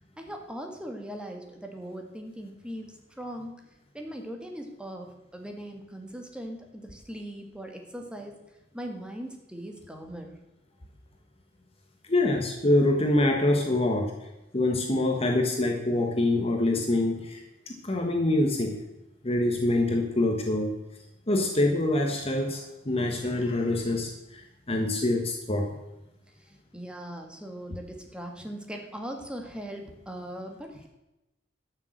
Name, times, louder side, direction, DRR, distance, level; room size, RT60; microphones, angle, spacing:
voice 1, 0.2-3.5 3.9-8.4 8.7-10.3 26.7-30.9, equal, 5° right, 3 dB, 1.7 m, -40 dB
voice 2, 12.1-14.1 14.5-18.8 19.2-20.7 21.3-25.7, left 1 dB, 30° left, 3 dB, 1.3 m, -25 dB
12.0 x 6.5 x 7.8 m, 0.95 s
head